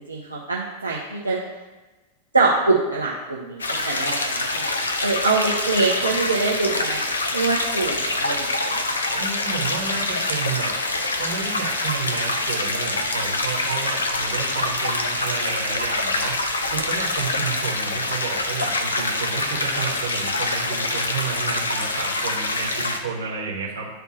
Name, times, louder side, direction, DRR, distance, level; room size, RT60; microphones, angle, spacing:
voice 1, 0.0-1.4 2.3-4.7 5.0-7.0 7.3-8.8, right 3 dB, 80° right, -5 dB, 0.7 m, -24 dB
sound 1, 3.6-23.0, left 2 dB, 75° left, 0.6 m, -25 dB
voice 2, 9.1-10.7 11.2-16.3 16.7-23.9, right 5 dB, 60° right, -5 dB, 1.9 m, -31 dB
9.9 x 3.5 x 3.0 m, 1.2 s
figure-of-eight pair, 90°, 0 cm